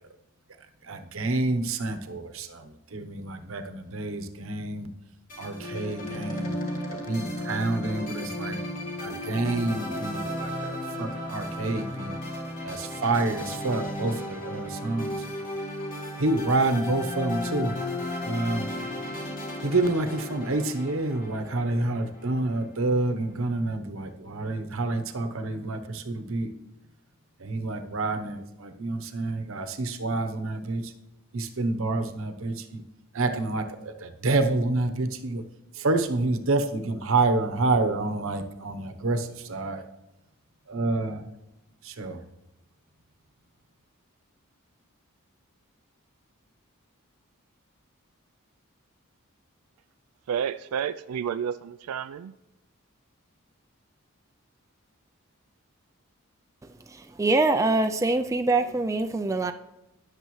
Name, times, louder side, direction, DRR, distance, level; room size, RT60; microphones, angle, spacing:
voice 1, 0.9-4.9 5.4-6.5 7.1-8.6 9.0-12.2 12.6-15.1 16.2-17.8 18.2-18.7 19.6-26.5 27.4-30.8 31.3-32.8 33.1-35.4 35.8-39.8 40.7-41.2 41.8-42.2, right 2 dB, 65° right, 7 dB, 0.9 m, -28 dB
sound 1, 5.3-22.7, left 1 dB, 40° left, 1.7 m, -34 dB
voice 2, 50.3-52.3, right 8 dB, 85° right, 12 dB, 0.3 m, -30 dB
voice 3, 57.2-59.5, right 2 dB, 15° right, 6 dB, 0.4 m, -23 dB
19.0 x 6.7 x 3.1 m, 0.94 s
head